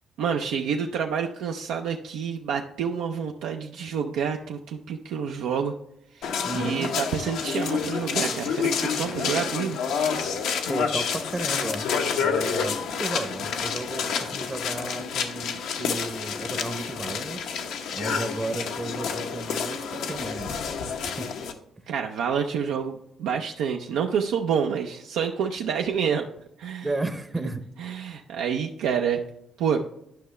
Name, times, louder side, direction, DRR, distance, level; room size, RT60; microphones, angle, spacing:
voice 1, 0.2-5.7 6.1-9.8 21.9-26.3 26.6-26.9 27.8-29.2 29.6-29.8, right 7 dB, 90° right, 2 dB, 0.5 m, -28 dB
sound 1, 6.2-21.5, left 6 dB, 85° left, 0.8 m, -29 dB
voice 2, 6.4-6.9 10.7-11.9 12.2-17.6 17.9-20.6 21.0-21.3 21.8-21.9 26.8-27.6, right 2 dB, 20° right, 9 dB, 0.7 m, -33 dB
10.5 x 5.6 x 3.2 m, 0.77 s
cardioid pair, 90°, 0 cm